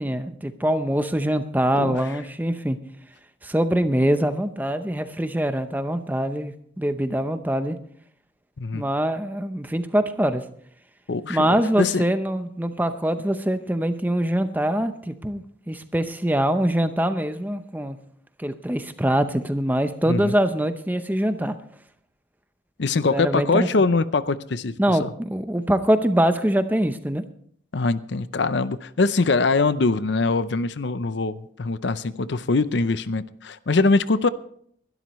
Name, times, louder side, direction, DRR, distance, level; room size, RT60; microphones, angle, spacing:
voice 1, 0.0-2.8 3.4-7.8 8.7-10.4 11.3-18.0 18.4-21.6 23.1-23.7 24.8-27.2, right 1 dB, 10° right, 0.7 m, -23 dB
voice 2, 11.1-12.0 20.1-20.3 22.8-25.1 27.7-34.3, left 3 dB, 60° left, 0.6 m, -23 dB
22.0 x 12.0 x 3.1 m
head